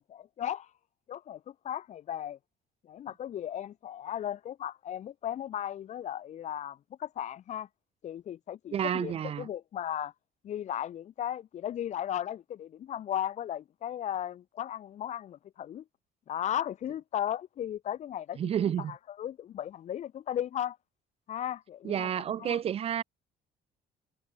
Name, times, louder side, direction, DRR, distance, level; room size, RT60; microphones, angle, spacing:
voice 1, 0.1-0.7 1.1-2.4 2.8-7.7 8.0-10.1 10.4-15.8 16.3-18.4 18.9-20.8 21.3-22.1 22.4-22.6, left 10 dB, 45° left, 0.5 m, -36 dB
voice 2, 8.7-9.5 18.4-19.0 21.8-23.0, right 9 dB, 35° right, 0.4 m, -30 dB
cardioid pair, 110°, 17 cm